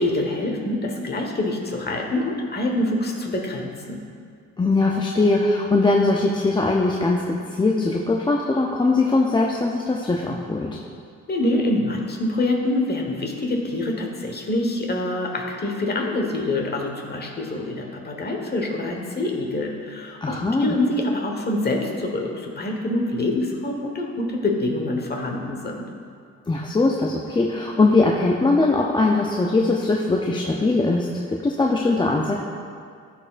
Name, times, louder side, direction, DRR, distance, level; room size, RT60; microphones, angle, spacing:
voice 1, 0.0-4.0 11.3-25.8, left 1 dB, 35° left, 1 dB, 1.3 m, -25 dB
voice 2, 4.6-10.8 20.2-20.7 26.5-32.3, left 3 dB, 15° left, -1 dB, 0.5 m, -21 dB
13.0 x 4.5 x 2.5 m, 2.2 s
cardioid pair, 90°, 30 cm